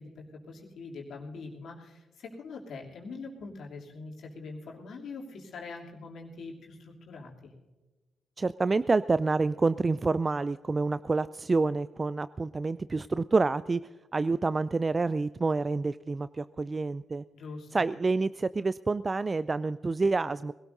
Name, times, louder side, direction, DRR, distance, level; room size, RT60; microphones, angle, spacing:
voice 1, 0.0-7.5 17.3-17.8, left 3 dB, 60° left, -1 dB, 2.9 m, -43 dB
voice 2, 8.4-13.8 14.1-17.2 17.7-20.5, right 3 dB, 30° right, 16 dB, 0.3 m, -28 dB
22.0 x 17.5 x 2.7 m, 1.2 s
hypercardioid pair, 40°, 0 cm